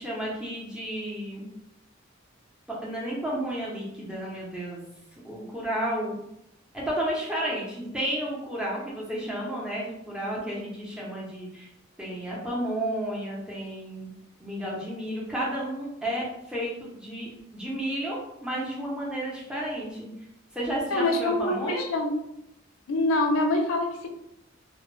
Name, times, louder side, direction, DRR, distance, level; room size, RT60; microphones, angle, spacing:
voice 1, 0.0-1.5 2.7-4.9 5.2-6.2 6.7-11.7 12.0-14.1 14.4-20.1 20.5-21.8, right 1 dB, 5° right, -5 dB, 0.6 m, -32 dB
voice 2, 20.9-22.1 22.9-24.1, left 2 dB, 90° left, 3 dB, 0.4 m, -25 dB
2.2 x 2.1 x 3.1 m, 0.80 s
head